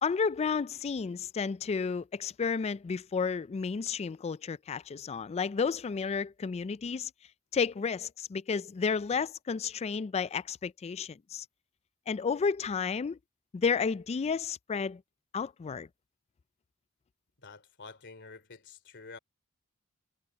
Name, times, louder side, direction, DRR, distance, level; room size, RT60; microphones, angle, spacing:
voice 1, 0.0-7.1 7.5-11.5 12.1-13.2 13.5-15.0 15.3-15.9, left 5 dB, 30° left, 0.3 m, -32 dB
voice 2, 17.4-19.2, left 4 dB, 55° left, 3.1 m, -49 dB
head